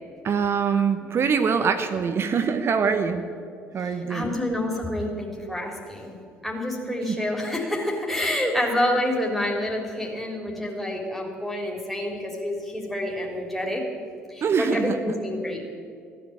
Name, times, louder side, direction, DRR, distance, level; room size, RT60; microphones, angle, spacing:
voice 1, 0.2-3.2 3.7-4.4 7.1-7.2 14.4-15.1, right 6 dB, 40° right, 8 dB, 1.0 m, -24 dB
voice 2, 3.8-6.1 6.4-13.8 14.3-15.7, left 1 dB, ahead, -1 dB, 3.4 m, -28 dB
15.5 x 10.0 x 8.7 m, 2.4 s
figure-of-eight pair, 55°, 6 cm